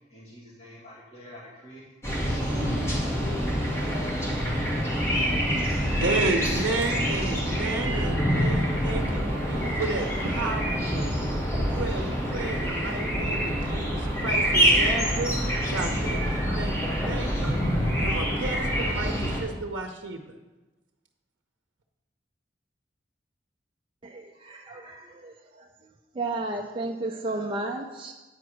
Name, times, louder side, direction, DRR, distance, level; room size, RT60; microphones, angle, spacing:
voice 1, 0.1-3.3 3.6-4.2, equal, 35° left, -7 dB, 2.0 m, -47 dB
sound 1, 2.0-19.4, equal, 15° left, 1.8 m, -26 dB
voice 2, 6.0-11.1 11.7-15.3 15.7-17.6 18.0-20.2, right 3 dB, 85° right, 3 dB, 0.7 m, -32 dB
voice 3, 24.0-25.3 26.2-28.1, right 2 dB, 30° right, 0 dB, 0.4 m, -33 dB
8.8 x 4.8 x 6.2 m, 1.2 s
head